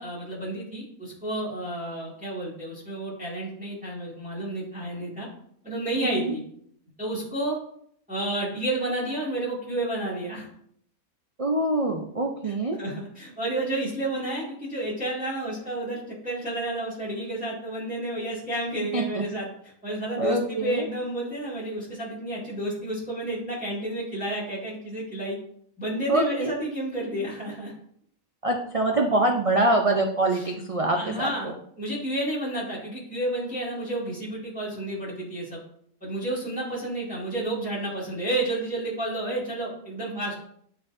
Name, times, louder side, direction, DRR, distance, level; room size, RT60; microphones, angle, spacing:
voice 1, 0.0-5.3 5.6-6.4 7.0-7.6 8.1-10.5 12.4-12.5 12.8-25.4 25.8-27.7 30.3-30.4 30.9-35.6 36.0-40.3, right 1 dB, 5° right, -6 dB, 2.1 m, -31 dB
voice 2, 6.0-6.4 11.4-12.8 18.9-19.2 20.2-20.9 26.1-26.5 28.4-31.5, right 2 dB, 45° right, 2 dB, 0.4 m, -24 dB
10.5 x 4.0 x 2.6 m, 0.66 s
omnidirectional pair, 1.5 m